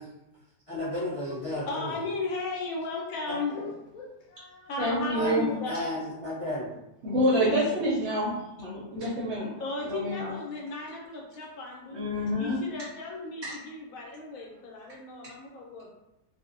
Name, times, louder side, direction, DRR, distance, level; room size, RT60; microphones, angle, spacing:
voice 1, 0.7-1.9 3.3-3.4 5.1-6.8, left 1 dB, 40° left, -10 dB, 0.5 m, -33 dB
voice 2, 1.3-6.1 7.3-7.7 9.6-15.9, left 3 dB, 70° left, -2 dB, 1.0 m, -36 dB
voice 3, 4.8-5.5 7.0-9.5 9.9-10.3 11.9-12.6, equal, 65° right, -6 dB, 0.7 m, -27 dB
2.5 x 2.0 x 2.5 m, 0.89 s
omnidirectional pair, 1.6 m